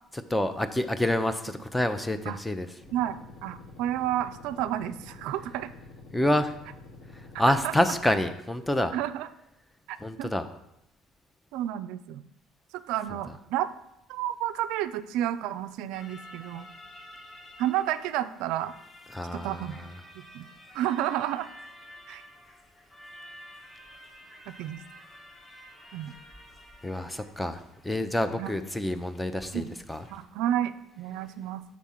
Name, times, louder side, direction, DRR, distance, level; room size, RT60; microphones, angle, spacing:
voice 1, 0.3-2.7 6.1-6.5 7.1-8.9 10.0-10.4 19.1-19.9 26.8-30.0, left 1 dB, 10° left, 9 dB, 0.5 m, -28 dB
sound 1, 2.8-8.0, left 3 dB, 55° left, 1.5 m, -48 dB
voice 2, 2.9-5.7 7.5-7.7 8.9-9.3 9.9-10.3 11.5-12.2 12.9-13.7 14.1-16.7 17.6-18.8 19.3-19.8 20.1-20.5 20.7-21.5 22.1-22.3 24.5-24.8 25.9-26.2 28.4-28.5 29.5-29.7 30.1-31.6, right 12 dB, 70° right, 13 dB, 0.3 m, -31 dB
sound 2, 15.9-30.2, equal, 30° left, 1.2 m, -51 dB
6.1 x 3.5 x 5.7 m, 0.83 s
hypercardioid pair, 65°, 0 cm